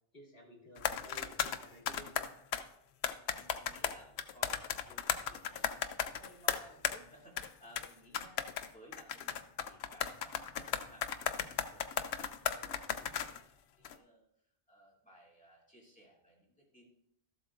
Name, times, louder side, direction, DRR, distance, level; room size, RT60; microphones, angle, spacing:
voice 1, 0.1-2.3, right 1 dB, 65° left, 0 dB, 2.2 m, -55 dB
sound 1, 0.8-2.6 3.0-7.0 7.4-7.5 7.8-7.9 8.1-13.4 13.8-13.9, left 9 dB, 90° left, 0.8 m, -35 dB
voice 2, 3.2-13.4 13.8-14.3 14.7-16.9, right 1 dB, 5° left, -4 dB, 2.5 m, -60 dB
13.0 x 7.8 x 2.5 m, 0.75 s
omnidirectional pair, 1.0 m